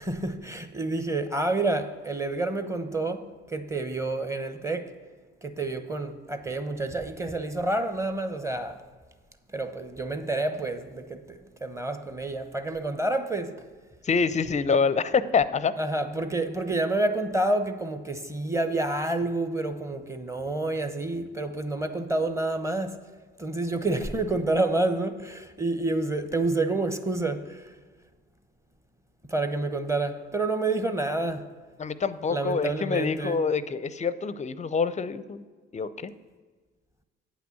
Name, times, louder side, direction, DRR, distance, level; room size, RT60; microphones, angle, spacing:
voice 1, 0.0-4.9 5.4-8.8 9.5-13.6 15.8-23.0 23.4-27.7 29.3-31.5 32.3-33.4, right 2 dB, 10° right, 0.9 m, -29 dB
voice 2, 14.0-15.7 31.8-35.4 35.7-36.1, left 5 dB, 25° left, 0.5 m, -26 dB
8.6 x 6.0 x 7.1 m
hypercardioid pair, 50°, 31 cm